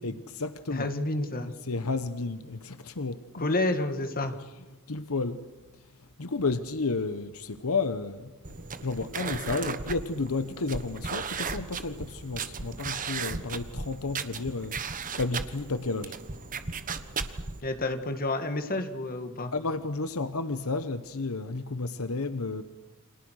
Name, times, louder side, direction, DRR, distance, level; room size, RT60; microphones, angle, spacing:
voice 1, 0.0-0.9 1.4-3.5 4.9-5.5 6.2-8.3 8.8-14.8 15.2-16.2 19.5-22.6, left 3 dB, 75° left, 1.0 m, -32 dB
voice 2, 0.7-1.5 3.4-4.4 17.6-19.5, left 2 dB, 40° left, 2.0 m, -29 dB
sound 1, 8.4-17.6, right 5 dB, 40° right, 1.3 m, -36 dB
29.5 x 25.5 x 6.4 m
head